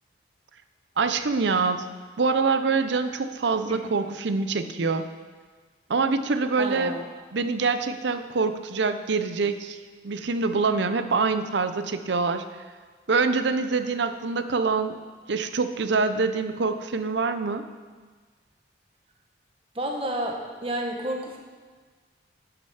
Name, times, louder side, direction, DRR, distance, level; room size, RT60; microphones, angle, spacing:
voice 1, 1.0-1.8 2.2-5.1 5.9-7.0 7.3-9.8 10.0-12.5 13.1-15.0 15.3-17.7, right 4 dB, 70° right, 10 dB, 0.6 m, -25 dB
voice 2, 6.6-7.0 19.7-21.4, right 1 dB, 30° right, 1 dB, 1.2 m, -30 dB
11.5 x 6.8 x 5.6 m, 1.5 s
head